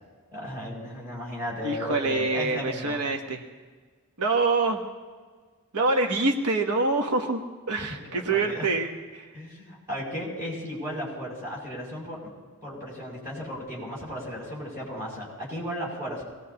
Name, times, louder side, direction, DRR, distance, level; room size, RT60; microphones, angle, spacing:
voice 1, 0.3-3.0 8.1-8.7 9.3-12.3 12.6-16.2, equal, 15° right, -6 dB, 6.7 m, -35 dB
voice 2, 1.6-3.4 4.2-4.8 5.7-7.4 7.7-9.3, right 3 dB, 85° right, 3 dB, 1.1 m, -25 dB
25.0 x 19.0 x 2.9 m, 1.5 s
head